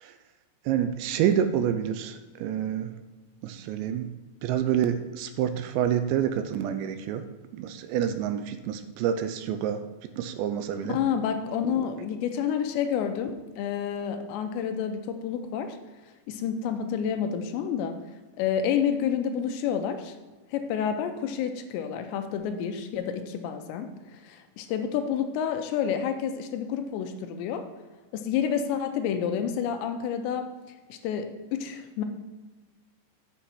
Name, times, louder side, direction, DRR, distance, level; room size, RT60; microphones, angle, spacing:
voice 1, 0.7-2.9 3.4-4.1 4.4-7.2 7.5-9.8 10.2-11.0, right 9 dB, 80° right, 9 dB, 2.7 m, -28 dB
voice 2, 10.9-15.8 16.3-18.0 18.4-20.2 20.5-27.7 28.1-30.5 30.9-32.0, left 8 dB, 80° left, 7 dB, 2.8 m, -29 dB
8.0 x 6.2 x 5.8 m, 1.3 s
omnidirectional pair, 5.3 m